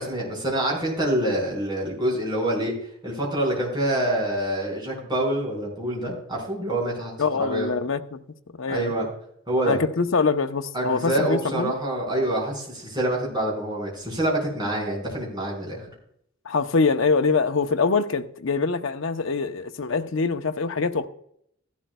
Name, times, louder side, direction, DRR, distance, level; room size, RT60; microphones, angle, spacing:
voice 1, 0.0-2.7 3.0-7.1 7.4-7.7 8.7-9.1 9.5-9.8 10.7-15.8, right 1 dB, 20° right, 5.0 m, -26 dB
voice 2, 7.2-8.2 8.6-8.9 9.6-11.7 16.4-21.1, left 4 dB, 70° left, 0.7 m, -24 dB
15.5 x 11.5 x 2.3 m
head